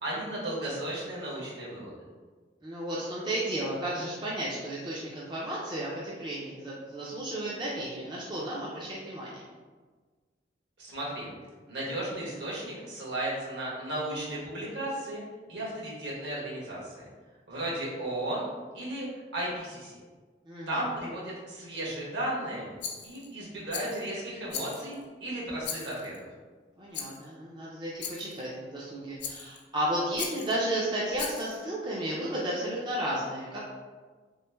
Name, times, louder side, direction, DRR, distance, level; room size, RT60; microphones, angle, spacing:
voice 1, 0.0-1.9 10.8-11.3 11.7-15.2 15.5-17.1 17.5-18.5 18.7-19.1 19.3-19.9 20.7-22.7 23.0-26.3, right 1 dB, 65° right, -6 dB, 1.3 m, -34 dB
voice 2, 2.6-9.4 20.5-20.8 26.8-33.6, right 1 dB, 25° right, -6 dB, 0.5 m, -33 dB
Rattle, 22.8-23.3 23.7-24.1 24.5-25.0 25.6-26.2 26.9-27.3 28.0-28.4 29.2-29.6 30.2-30.6 31.1-31.6, left 7 dB, 65° left, 0.5 m, -38 dB
3.1 x 3.0 x 3.4 m, 1.4 s
head